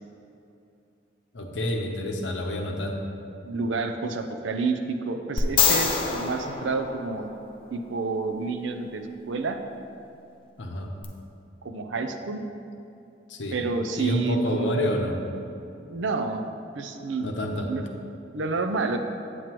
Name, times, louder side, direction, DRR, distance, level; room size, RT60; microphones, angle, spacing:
voice 1, 1.3-3.0 10.6-10.9 13.3-13.6 14.0-15.2 17.2-17.7, left 1 dB, 75° left, 2 dB, 0.8 m, -28 dB
voice 2, 3.4-7.3 7.7-9.6 11.6-12.4 13.5-14.7 15.9-16.4 16.7-17.3 17.7-17.8 18.3-19.0, right 4 dB, 80° right, 6 dB, 0.5 m, -29 dB
sound 1, 5.4-7.6 11.0-11.1, left 6 dB, 30° left, 0.5 m, -25 dB
8.1 x 7.6 x 3.0 m, 2.7 s
head